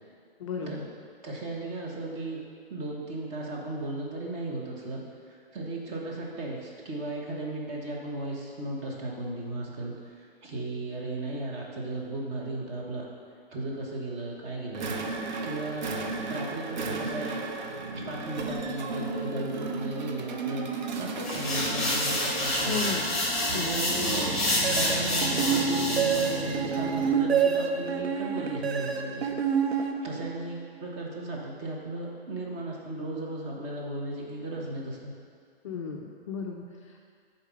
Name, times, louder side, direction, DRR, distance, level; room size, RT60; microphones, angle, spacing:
voice 1, 0.4-0.7 22.7-23.1 23.5-23.8 35.6-37.1, left 5 dB, 30° left, 0 dB, 0.4 m, -34 dB
voice 2, 1.2-2.4 2.7-5.0 5.3-13.1 13.5-15.9 16.3-17.4 17.9-23.0 23.5-24.4 24.7-29.4 29.7-35.1, right 2 dB, 25° right, -2 dB, 1.1 m, -36 dB
sound 1, 14.7-27.3, right 3 dB, 45° right, 0.7 m, -35 dB
sound 2, 21.2-26.3, left 1 dB, ahead, 1.5 m, -28 dB
sound 3, 24.6-30.5, right 6 dB, 85° right, 0.7 m, -28 dB
7.0 x 4.2 x 5.4 m, 2.2 s
figure-of-eight pair, 120°, 31 cm